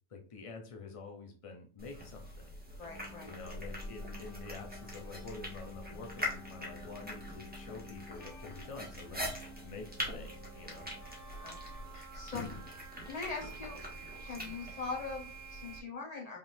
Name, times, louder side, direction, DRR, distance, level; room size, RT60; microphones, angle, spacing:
voice 1, 0.1-2.2 3.2-9.2 9.6-10.3 10.5-10.9 12.3-12.6, left 4 dB, 55° left, 2 dB, 0.3 m, -47 dB
sound 1, 1.8-15.8, left 1 dB, 5° right, 1.2 m, -44 dB
voice 2, 2.8-3.3 11.4-11.6 11.9-12.4 13.1-13.8 14.2-16.4, left 4 dB, 30° left, 0 dB, 1.1 m, -41 dB
sound 2, 2.9-11.8, left 4 dB, 80° left, 1.2 m, -53 dB
sound 3, 6.2-15.8, right 7 dB, 65° right, 0.6 m, -53 dB
5.4 x 3.6 x 2.6 m, 0.39 s
omnidirectional pair, 1.5 m